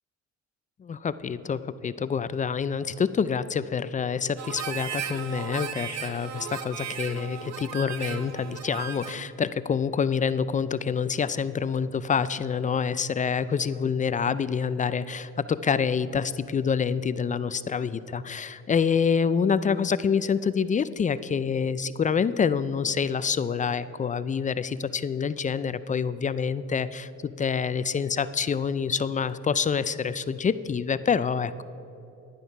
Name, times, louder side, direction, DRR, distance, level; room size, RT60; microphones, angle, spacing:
voice 1, 0.8-31.6, left 6 dB, 25° left, 15 dB, 0.3 m, -27 dB
Harmonica, 4.4-9.3, right 8 dB, 60° right, 0.8 m, -36 dB
11.5 x 9.2 x 5.4 m, 2.9 s
cardioid pair, 90°, 30 cm